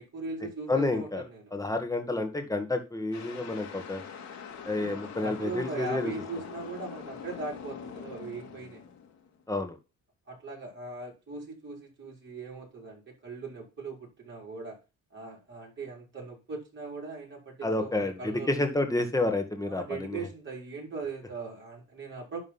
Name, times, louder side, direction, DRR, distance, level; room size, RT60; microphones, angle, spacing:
voice 1, 0.0-1.5 4.8-8.8 10.3-14.8 15.1-18.5 19.7-22.4, right 4 dB, 40° right, -2 dB, 5.0 m, -39 dB
voice 2, 0.7-1.2 1.5-4.0 4.7-6.1 9.5-9.7 17.6-20.3, left 2 dB, 10° left, 6 dB, 2.0 m, -29 dB
sound 1, 3.1-9.4, left 6 dB, 65° left, 2.5 m, -44 dB
11.0 x 4.0 x 5.8 m, 0.29 s
cardioid pair, 90°, 30 cm